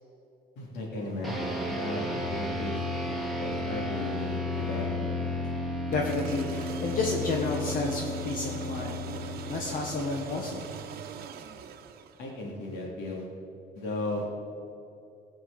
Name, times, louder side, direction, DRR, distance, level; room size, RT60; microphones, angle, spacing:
voice 1, 0.5-4.9 12.2-13.2 13.7-14.3, left 2 dB, 85° left, -2 dB, 3.4 m, -35 dB
sound 1, 1.2-10.9, left 2 dB, ahead, 2.0 m, -33 dB
voice 2, 5.9-10.7, left 3 dB, 55° left, 0 dB, 1.5 m, -31 dB
sound 2, 5.9-12.5, right 7 dB, 65° right, 1.0 m, -41 dB
17.0 x 6.1 x 7.6 m, 2.8 s
cardioid pair, 110°, 17 cm